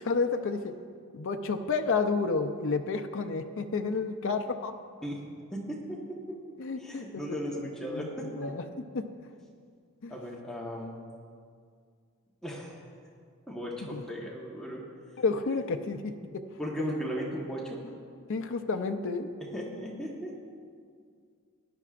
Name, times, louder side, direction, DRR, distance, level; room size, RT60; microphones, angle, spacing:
voice 1, 0.1-0.7 1.1-4.7 6.6-7.2 7.5-8.1 8.3-8.6 8.9-9.0 10.0-10.1 13.9-14.0 15.2-16.4 16.8-16.9 18.3-19.3, left 4 dB, 60° left, 7 dB, 0.5 m, -30 dB
voice 2, 5.5-6.4 6.8-8.5 10.1-10.9 12.4-12.8 13.5-14.8 16.6-17.8 19.5-20.3, equal, 5° left, -4 dB, 1.2 m, -36 dB
17.5 x 11.0 x 2.5 m, 2.2 s
head